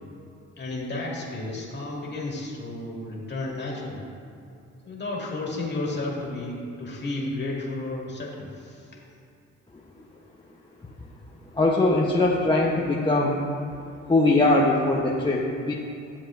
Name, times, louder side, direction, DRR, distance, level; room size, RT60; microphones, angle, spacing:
voice 1, 0.6-4.1 4.8-9.0, left 2 dB, 35° left, -3 dB, 2.1 m, -32 dB
voice 2, 11.5-13.4 14.1-15.7, left 2 dB, 15° left, -3 dB, 0.8 m, -21 dB
13.0 x 7.4 x 2.5 m, 2.6 s
cardioid pair, 90°, 30 cm